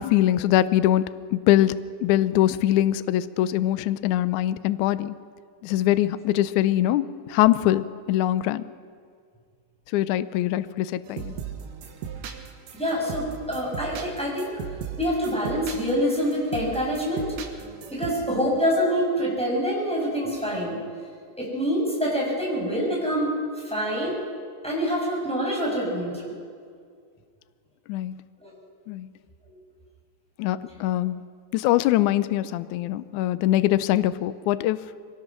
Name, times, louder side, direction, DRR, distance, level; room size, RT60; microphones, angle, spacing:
voice 1, 0.0-5.2 5.6-8.6 9.9-11.4 27.9-28.2 28.9-29.1 30.4-31.2 31.5-34.8, left 13 dB, 75° left, 13 dB, 1.9 m, -23 dB
sound 1, 11.1-18.1, right 7 dB, 70° right, 2.8 m, -38 dB
voice 2, 12.7-14.5 15.0-17.2 17.9-20.8 21.4-23.3 23.6-24.2 24.6-26.3 28.4-28.5 29.5-29.6, equal, ahead, -4 dB, 6.6 m, -26 dB
23.5 x 18.5 x 6.3 m, 2.1 s
omnidirectional pair, 4.0 m